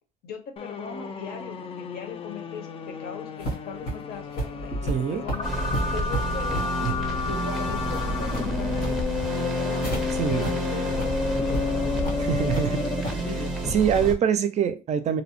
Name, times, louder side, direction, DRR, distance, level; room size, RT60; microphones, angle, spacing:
voice 1, 0.2-5.5 5.9-9.0 9.3-10.0 10.3-13.6, left 6 dB, 65° left, 0.8 m, -39 dB
sound 1, 0.6-13.3, left 5 dB, 35° left, 0.3 m, -31 dB
sound 2, 3.4-10.0 10.4-10.5 10.9-11.1 11.5-11.6 12.1-12.7 13.0-13.3, right 1 dB, 85° left, 1.3 m, -32 dB
voice 2, 4.9-5.2 6.8-6.9 10.1-10.5 12.2-12.8 13.7-15.2, right 8 dB, 40° right, 0.4 m, -24 dB
sound 3, 5.4-14.2, right 2 dB, 5° right, 0.6 m, -30 dB
2.6 x 2.0 x 2.9 m
cardioid pair, 110°, 17 cm